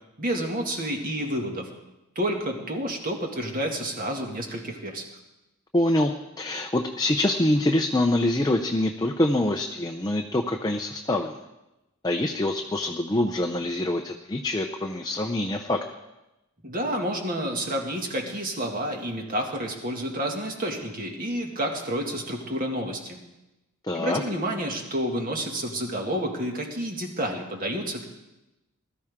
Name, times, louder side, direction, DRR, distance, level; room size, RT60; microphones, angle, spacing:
voice 1, 0.2-1.7 2.2-5.0 16.6-23.2 23.9-28.0, right 1 dB, 40° right, 2 dB, 2.1 m, -29 dB
voice 2, 5.7-6.1 6.4-11.3 12.0-15.8 23.9-24.2, left 1 dB, 20° left, 3 dB, 0.6 m, -25 dB
20.5 x 13.5 x 3.6 m, 0.98 s
head